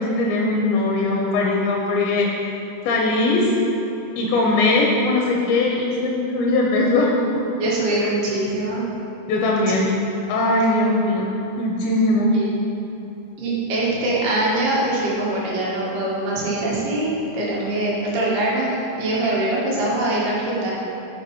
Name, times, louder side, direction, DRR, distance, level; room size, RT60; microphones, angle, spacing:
voice 1, 0.0-2.3 2.8-3.5 4.2-7.1 7.4-7.5 9.3-10.0 10.3-11.2 11.6-12.3, left 2 dB, 85° left, -2 dB, 2.5 m, -20 dB
voice 2, 7.6-8.8 9.5-9.9 12.3-12.5 13.4-20.7, right 2 dB, 75° right, -6 dB, 3.3 m, -23 dB
10.5 x 6.6 x 3.0 m, 2.9 s
omnidirectional pair, 4.5 m